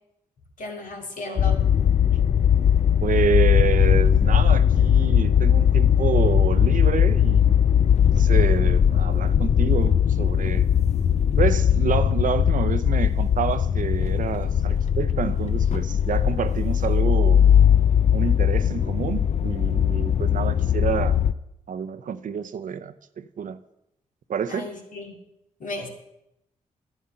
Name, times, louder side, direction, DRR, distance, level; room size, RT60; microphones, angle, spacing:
voice 1, 0.6-1.6 24.5-25.2 25.6-25.9, left 2 dB, 65° left, 1 dB, 2.3 m, -34 dB
sound 1, 1.4-21.3, left 8 dB, 50° left, 0.5 m, -19 dB
voice 2, 3.0-7.6 8.1-10.7 11.4-17.4 18.1-21.2 21.7-23.6 24.3-24.7, right 7 dB, 65° right, 12 dB, 0.7 m, -28 dB
11.0 x 8.4 x 5.7 m, 0.83 s
supercardioid pair, 50°, 14 cm